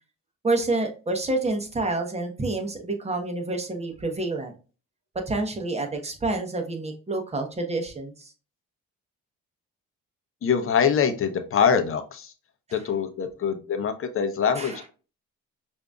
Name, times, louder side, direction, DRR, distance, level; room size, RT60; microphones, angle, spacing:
voice 1, 0.4-4.5 5.3-8.3 14.6-14.9, right 2 dB, 20° right, 4 dB, 1.0 m, -28 dB
voice 2, 10.4-12.3 12.7-14.9, left 7 dB, 45° left, 8 dB, 0.7 m, -24 dB
4.9 x 2.6 x 2.3 m, 0.35 s
cardioid pair, 90°, 30 cm